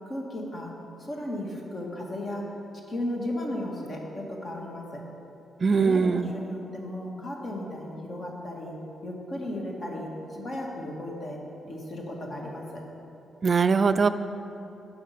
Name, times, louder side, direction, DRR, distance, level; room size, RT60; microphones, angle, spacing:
voice 1, 0.1-0.7 1.0-2.5 2.9-5.1 5.7-8.7 9.0-11.4 11.7-12.8, left 1 dB, 50° left, -1 dB, 1.7 m, -35 dB
voice 2, 5.6-6.3 13.4-14.1, right 5 dB, 50° right, 12 dB, 0.3 m, -21 dB
7.8 x 6.1 x 5.8 m, 2.9 s
supercardioid pair, 55°, 0 cm